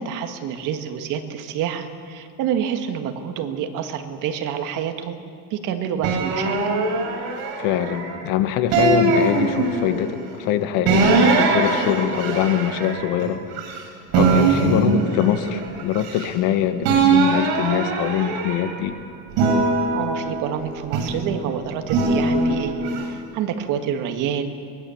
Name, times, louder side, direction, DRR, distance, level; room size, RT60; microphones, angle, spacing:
voice 1, 0.0-5.2 5.5-6.6 14.5-14.8 19.9-24.5, right 8 dB, 60° right, 6 dB, 1.9 m, -28 dB
sound 1, 6.0-8.2 8.7-10.1 10.9-13.8 14.1-16.5 16.8-18.8 19.3-21.3 21.9-23.0, right 3 dB, 75° right, 7.9 m, -21 dB
voice 2, 7.6-13.5 14.1-19.0, left 10 dB, 75° left, 9 dB, 1.6 m, -23 dB
24.5 x 20.5 x 7.2 m, 2.4 s
cardioid pair, 170°, 36 cm